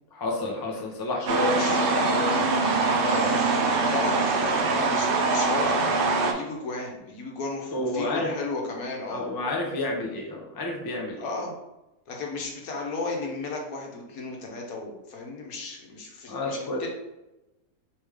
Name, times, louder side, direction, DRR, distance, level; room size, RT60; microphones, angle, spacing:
voice 1, 0.1-2.5 7.7-8.3 9.1-11.2 16.3-16.9, left 2 dB, 40° left, 0 dB, 0.3 m, -30 dB
sound 1, 1.3-6.3, right 3 dB, 75° right, 0.5 m, -23 dB
voice 2, 1.5-1.8 3.0-5.7 6.2-9.3 11.2-11.5 12.1-16.9, left 3 dB, 80° left, 0 dB, 1.3 m, -34 dB
3.5 x 3.3 x 3.2 m, 0.96 s
omnidirectional pair, 1.5 m